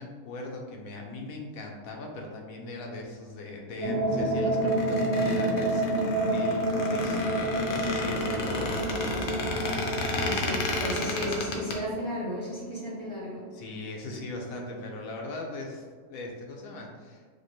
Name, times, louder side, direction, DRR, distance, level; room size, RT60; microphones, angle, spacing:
voice 1, 0.0-7.2 7.7-9.3 13.5-15.8 16.1-17.2, left 2 dB, 85° left, 1 dB, 1.1 m, -39 dB
sound 1, 3.8-13.2, right 1 dB, 50° right, 0.9 m, -29 dB
Squeak, 4.5-11.7, left 2 dB, 65° left, 0.8 m, -33 dB
voice 2, 10.1-13.5, left 1 dB, 25° right, -6 dB, 0.7 m, -34 dB
5.0 x 2.2 x 3.0 m, 1.5 s
omnidirectional pair, 1.4 m